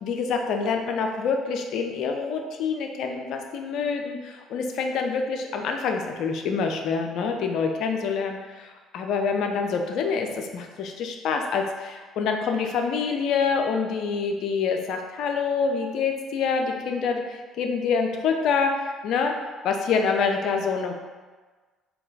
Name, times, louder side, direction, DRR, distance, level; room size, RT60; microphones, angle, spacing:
voice 1, 0.0-19.3 19.6-20.9, left 5 dB, 60° left, 4 dB, 0.4 m, -26 dB
3.8 x 2.3 x 3.9 m, 1.4 s
figure-of-eight pair, 50°, 0 cm